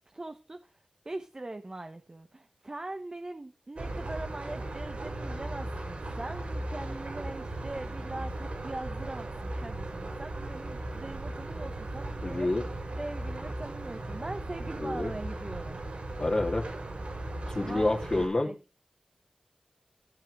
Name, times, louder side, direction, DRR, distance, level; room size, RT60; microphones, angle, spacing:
voice 1, 0.1-0.7 1.0-12.5 13.0-15.8 17.5-17.9 18.1-18.5, right 2 dB, 35° right, 7 dB, 1.2 m, -41 dB
sound 1, 3.8-18.3, right 2 dB, 70° right, 6.1 m, -37 dB
voice 2, 12.2-12.6 14.8-15.1 16.2-16.7 17.5-18.5, left 2 dB, 40° left, 0 dB, 2.5 m, -28 dB
15.5 x 7.7 x 4.9 m, 0.33 s
wide cardioid pair, 65°, 2 cm